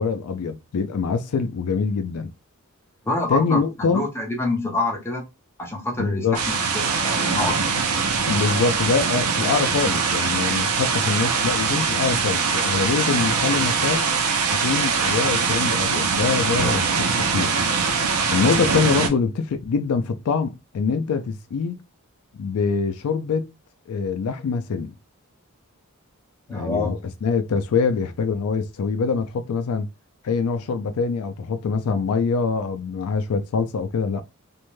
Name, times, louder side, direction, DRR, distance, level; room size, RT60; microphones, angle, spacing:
voice 1, 0.0-2.3 3.3-4.0 6.0-6.4 8.3-14.1 14.5-17.5 18.3-21.8 22.3-23.5 23.9-24.9 26.5-29.9 30.2-34.2, left 5 dB, 80° left, 0.4 m, -24 dB
voice 2, 3.0-5.3 5.6-7.6 26.5-27.0, left 2 dB, 10° left, 0.7 m, -27 dB
sound 1, 6.3-19.1, right 5 dB, 80° right, 0.6 m, -22 dB
2.6 x 2.1 x 3.1 m
head